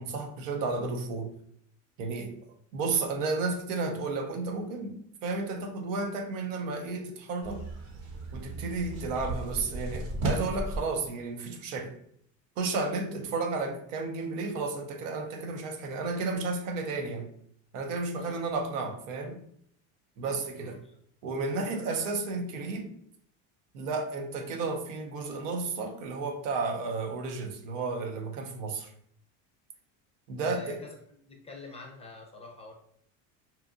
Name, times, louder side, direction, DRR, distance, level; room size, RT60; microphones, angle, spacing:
voice 1, 0.0-1.3 2.0-2.4 2.7-7.7 8.3-11.9 12.6-17.3 17.7-19.4 20.2-20.8 21.2-22.9 23.7-28.9 30.3-30.8, right 3 dB, 90° right, 0.7 m, -32 dB
sound 1, 7.4-10.8, right 2 dB, 45° right, 0.8 m, -35 dB
voice 2, 20.6-21.0 21.5-22.1 30.4-30.9 31.2-32.7, left 3 dB, 15° left, 0.4 m, -45 dB
2.8 x 2.3 x 2.4 m
supercardioid pair, 125°, 38 cm